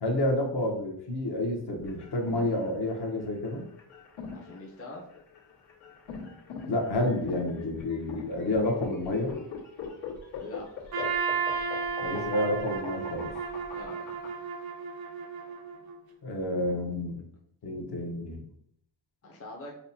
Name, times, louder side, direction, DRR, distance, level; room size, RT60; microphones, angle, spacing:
voice 1, 0.0-3.7 6.7-9.3 12.0-13.3 16.2-17.2 17.6-18.4, left 1 dB, 55° left, 0 dB, 0.9 m, -29 dB
sound 1, 1.8-14.3, left 5 dB, 80° left, 1.3 m, -41 dB
voice 2, 4.3-5.1 10.4-10.7 13.7-14.2 19.2-19.7, left 1 dB, 30° left, -2 dB, 0.6 m, -43 dB
Trumpet, 10.9-16.0, right 5 dB, 55° right, 0.5 m, -33 dB
5.6 x 2.1 x 2.6 m, 0.69 s
wide cardioid pair, 155°, 47 cm